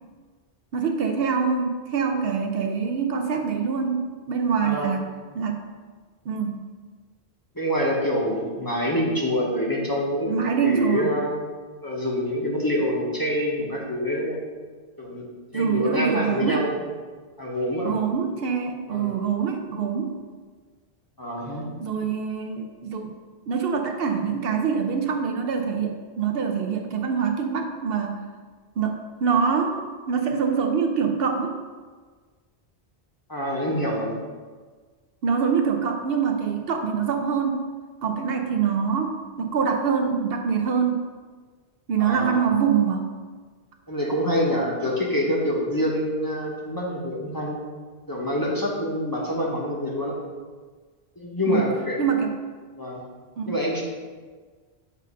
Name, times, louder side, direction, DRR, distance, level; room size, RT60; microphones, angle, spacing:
voice 1, 0.7-5.1 5.3-5.7 6.3-6.6 10.3-11.1 15.5-16.6 17.8-20.2 21.8-23.1 23.5-28.3 28.8-31.5 35.2-37.6 38.0-41.0 41.9-43.1 51.5-52.3 53.4-53.5, right 6 dB, 65° right, 4 dB, 0.7 m, -25 dB
voice 2, 4.6-4.9 7.5-10.3 10.6-11.3 11.8-14.4 15.0-15.3 15.5-16.8 17.4-18.0 18.9-19.1 21.2-21.7 33.3-34.2 42.0-42.5 43.9-47.6 48.1-50.1 51.2-52.0 52.8-53.0 53.5-53.8, equal, 20° left, -3 dB, 0.8 m, -26 dB
7.3 x 2.6 x 5.2 m, 1.5 s
omnidirectional pair, 1.1 m